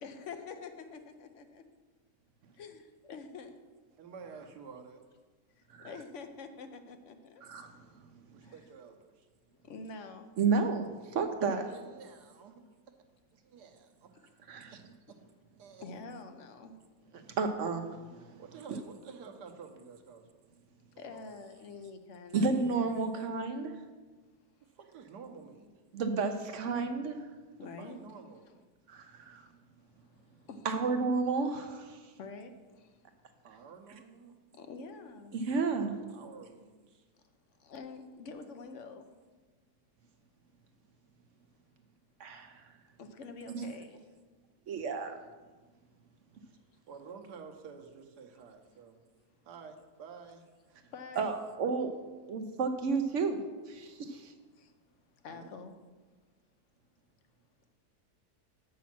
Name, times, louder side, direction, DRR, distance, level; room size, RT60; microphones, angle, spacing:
voice 1, 0.0-1.6 2.6-3.6 5.8-7.4 8.4-8.7 9.6-10.3 11.5-11.6 15.8-16.7 21.0-23.1 27.6-28.0 28.5-28.6 30.5-30.7 32.2-32.9 34.6-35.4 37.6-39.1 43.0-44.0 50.9-51.3 54.6-54.7 55.2-55.8, left 4 dB, 60° left, 7 dB, 0.9 m, -46 dB
voice 2, 4.0-5.0 8.3-9.0 11.4-12.6 13.4-14.1 15.6-15.8 18.4-20.2 21.1-21.3 24.9-25.7 27.8-28.4 33.4-34.4 35.8-36.7 46.9-49.0 49.5-50.4 50.7-50.8 55.3-55.5, right 5 dB, 90° right, 4 dB, 1.5 m, -50 dB
voice 3, 7.4-7.7 10.4-11.7 14.5-14.8 17.1-18.3 22.3-23.7 25.9-27.2 28.9-29.4 30.6-32.0 35.3-35.9 42.2-42.6 43.5-43.7 44.7-45.2 51.2-53.4 53.7-54.3, right 4 dB, 60° right, 7 dB, 0.9 m, -32 dB
7.1 x 6.2 x 5.9 m, 1.3 s
omnidirectional pair, 1.7 m